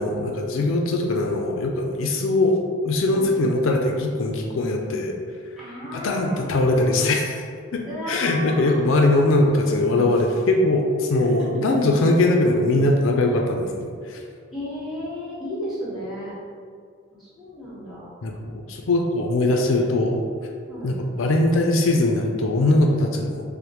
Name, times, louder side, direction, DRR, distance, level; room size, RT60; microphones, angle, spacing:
voice 1, 0.0-2.6 2.8-5.1 5.9-7.4 7.7-7.8 8.1-14.2 18.2-20.2 20.8-23.4, left 2 dB, 75° left, 2 dB, 0.4 m, -21 dB
voice 2, 5.6-6.7 7.8-8.9 11.2-11.5 14.5-16.3 17.2-18.1 20.7-20.9, left 1 dB, ahead, -11 dB, 1.4 m, -33 dB
6.3 x 2.1 x 3.0 m, 2.2 s
head